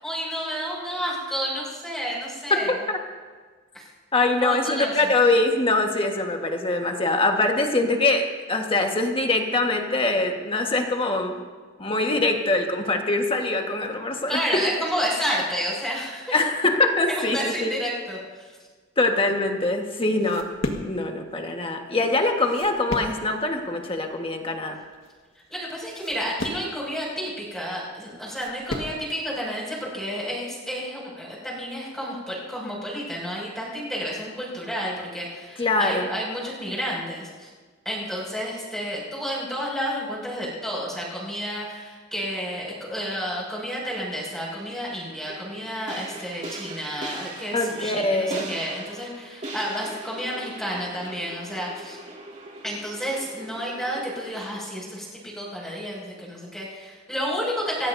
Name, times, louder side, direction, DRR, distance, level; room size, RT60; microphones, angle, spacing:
voice 1, 0.0-2.8 3.7-3.8 4.1-5.1 14.3-16.3 17.1-18.5 25.5-37.5 37.8-52.0 52.6-57.9, equal, ahead, -6 dB, 6.3 m, -31 dB
voice 2, 4.1-11.4 11.8-14.6 16.3-17.7 19.0-20.5 20.8-24.8 35.6-36.1 47.5-48.5, left 2 dB, 30° left, 3 dB, 1.5 m, -23 dB
sound 1, 19.5-29.1, left 1 dB, 80° left, 1.7 m, -36 dB
sound 2, 44.3-54.6, right 2 dB, 35° right, 2.3 m, -40 dB
28.0 x 15.5 x 2.7 m, 1.5 s
head